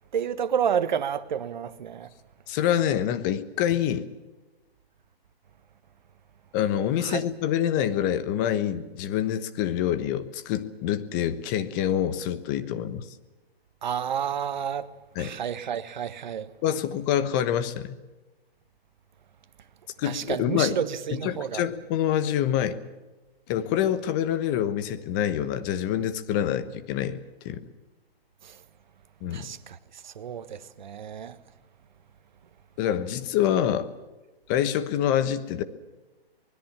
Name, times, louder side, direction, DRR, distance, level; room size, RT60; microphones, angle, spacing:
voice 1, 0.1-2.1 7.0-7.3 13.8-14.9 15.2-16.5 20.0-21.6 28.4-28.6 29.3-31.4, right 8 dB, 50° right, 1.6 m, -30 dB
voice 2, 2.5-4.0 6.5-13.1 15.1-15.3 16.6-18.0 20.0-20.8 21.1-22.8 23.5-27.6 29.2-29.5 32.8-33.9 34.5-35.6, left 10 dB, 20° left, 1.2 m, -26 dB
24.5 x 20.5 x 7.4 m
hypercardioid pair, 155°, 31 cm